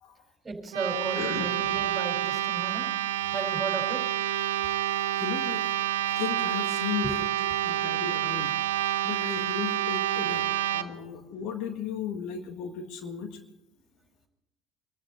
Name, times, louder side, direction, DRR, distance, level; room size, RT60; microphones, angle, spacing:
voice 1, 0.4-2.9 3.3-4.0 7.0-7.1, right 3 dB, 25° right, 4 dB, 4.4 m, -34 dB
sound 1, 0.7-10.8, right 12 dB, 80° right, 0.7 m, -28 dB
voice 2, 1.1-1.5 5.2-5.6 6.2-7.2 7.6-8.5 9.0-10.4 10.7-13.4, left 7 dB, 60° left, 7 dB, 1.6 m, -35 dB
25.0 x 14.0 x 4.0 m, 0.86 s
hypercardioid pair, 65°, 0 cm